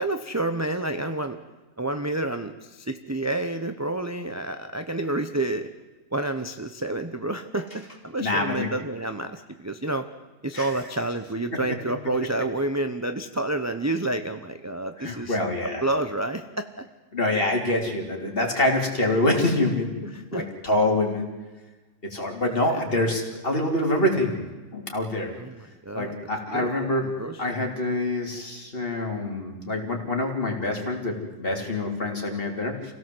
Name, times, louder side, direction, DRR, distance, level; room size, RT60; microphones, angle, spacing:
voice 1, 0.0-1.4 1.8-5.7 6.1-10.1 10.4-15.4 15.8-16.7 20.1-20.5 22.7-22.8 25.4-26.2 26.5-26.7 27.0-27.6, right 2 dB, 15° right, 7 dB, 0.6 m, -29 dB
voice 2, 8.2-8.7 10.5-10.7 15.0-15.8 17.1-21.3 22.0-24.4 24.7-25.3 25.9-27.0 27.4-32.9, left 1 dB, 35° left, 1 dB, 3.5 m, -26 dB
27.5 x 17.0 x 7.8 m, 1.2 s
omnidirectional pair, 1.7 m